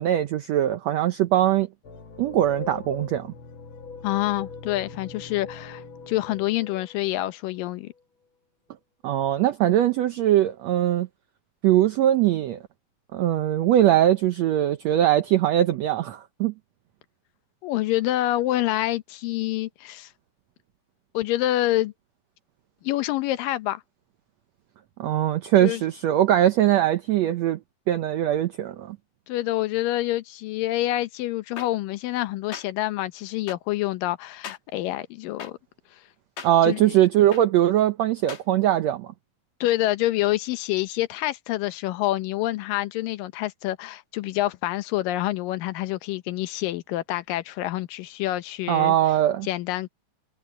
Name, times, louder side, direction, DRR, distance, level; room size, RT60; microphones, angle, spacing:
voice 1, 0.0-1.7 2.2-3.3 9.0-11.1 11.6-12.6 13.1-16.5 25.0-27.6 27.9-29.0 36.4-39.1 48.7-49.5, right 12 dB, 70° right, 1.7 m, -21 dB
sound 1, 1.8-8.0, left 4 dB, 50° left, 1.8 m, -41 dB
voice 2, 4.0-7.9 17.6-20.1 21.1-21.9 22.8-23.8 25.6-25.8 29.3-35.6 36.6-36.9 39.6-49.0 49.4-49.9, left 15 dB, 90° left, 2.6 m, -27 dB
sound 2, 31.6-31.7 32.5-32.6 33.5-33.6 34.4-34.6 35.4-35.5 36.4-36.5 37.3-37.4 38.3-38.4, left 7 dB, 75° left, 4.1 m, -37 dB
omnidirectional pair, 3.8 m